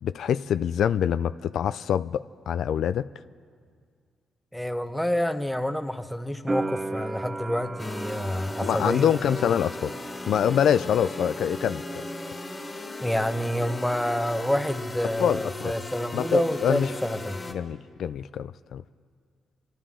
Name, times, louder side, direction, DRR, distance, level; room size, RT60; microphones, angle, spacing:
voice 1, 0.0-3.1 8.3-9.9 10.3-12.0 15.2-15.7 16.1-16.9 17.5-18.8, left 9 dB, 75° left, 13 dB, 0.3 m, -25 dB
voice 2, 4.5-9.1 13.0-17.4, left 1 dB, 5° left, 7 dB, 1.0 m, -28 dB
sound 1, 6.5-13.3 13.5-14.4, right 2 dB, 30° right, 0.5 m, -37 dB
sound 2, 7.8-17.5, left 2 dB, 25° left, 2.0 m, -37 dB
27.5 x 12.0 x 3.8 m, 2.1 s
cardioid pair, 75°, 0 cm